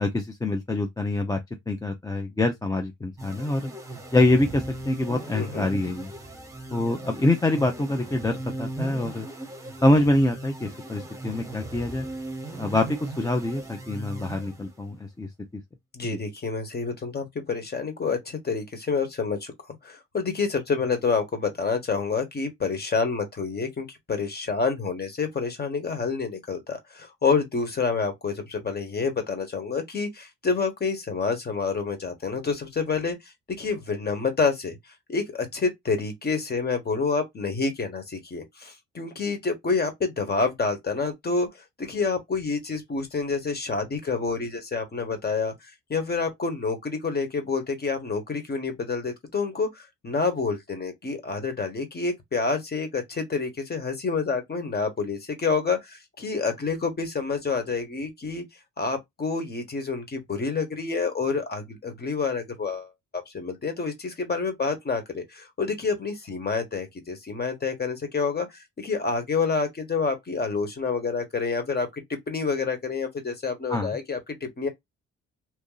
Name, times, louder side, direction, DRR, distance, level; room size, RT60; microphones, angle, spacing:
voice 1, 0.0-1.4 1.7-3.7 4.1-6.1 6.7-9.3 9.8-12.1 12.6-15.3 16.1-16.2 73.7-74.0, left 2 dB, 10° left, 0.6 m, -25 dB
sound 1, 3.2-15.0, right 2 dB, 10° right, 1.2 m, -38 dB
voice 2, 5.3-5.7 15.9-19.5 19.8-34.8 35.1-58.4 58.8-62.9 63.3-74.7, left 4 dB, 30° left, 1.4 m, -28 dB
3.1 x 2.5 x 3.8 m
cardioid pair, 90°, 30 cm